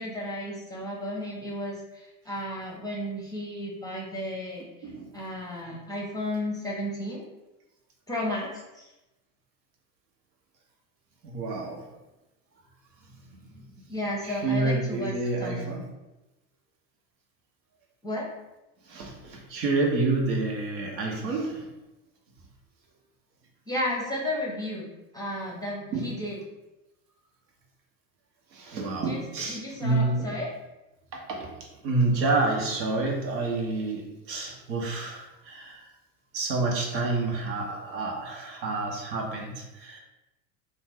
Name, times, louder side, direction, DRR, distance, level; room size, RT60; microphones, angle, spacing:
voice 1, 0.0-4.7 5.1-7.2 8.1-8.9 13.9-15.1 15.4-15.7 18.0-18.3 23.7-26.4 29.0-30.5, left 1 dB, 10° left, -4 dB, 0.6 m, -33 dB
voice 2, 11.2-11.9 13.4-13.6 14.2-15.9 18.9-21.7 25.9-26.1 28.5-30.4 31.1-35.9 36.3-40.0, right 3 dB, 80° right, 1 dB, 0.8 m, -29 dB
2.5 x 2.2 x 3.3 m, 0.99 s
hypercardioid pair, 85°, 50 cm